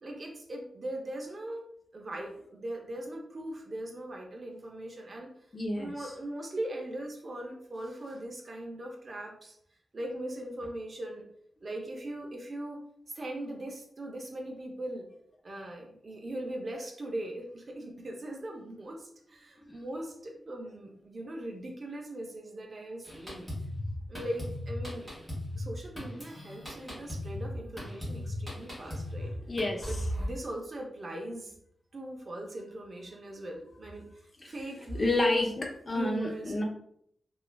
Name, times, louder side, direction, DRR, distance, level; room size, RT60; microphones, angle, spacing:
voice 1, 0.0-1.6 1.9-5.3 5.8-9.6 9.9-11.2 11.6-12.8 13.1-15.1 15.4-23.5 24.1-25.1 25.6-29.3 29.9-31.5 31.9-34.1 34.4-35.5 35.9-36.5, right 1 dB, 40° right, 0 dB, 0.5 m, -40 dB
voice 2, 5.5-6.1 19.7-19.8 28.8-29.9 34.4-34.5 35.0-36.6, left 2 dB, 30° left, 0 dB, 0.6 m, -31 dB
Drum kit, 23.0-30.3, left 1 dB, ahead, 1.3 m, -37 dB
3.1 x 2.3 x 2.2 m, 0.67 s
wide cardioid pair, 120°, 0 cm